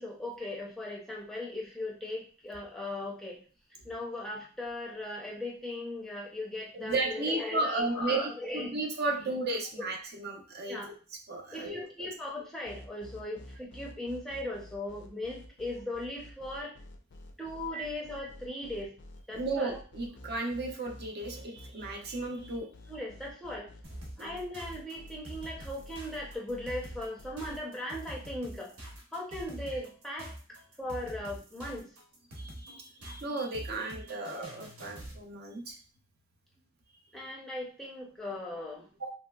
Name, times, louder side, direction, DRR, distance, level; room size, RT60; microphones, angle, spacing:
voice 1, 0.0-3.4 3.8-8.8 10.7-10.9 11.5-16.7 17.4-18.9 19.3-19.8 22.9-23.7 24.2-28.7 29.1-30.3 30.8-31.8 37.1-38.9, left 1 dB, ahead, -3 dB, 0.6 m, -38 dB
voice 2, 6.8-10.8 11.3-11.9 17.7-17.9 19.3-22.7 24.2-24.4 32.4-35.8 39.0-39.1, right 2 dB, 50° right, 1 dB, 0.6 m, -34 dB
sound 1, 12.6-27.6, left 1 dB, 60° left, 0.4 m, -49 dB
sound 2, 23.8-35.2, right 1 dB, 80° right, 0.9 m, -45 dB
3.1 x 2.7 x 2.2 m, 0.38 s
head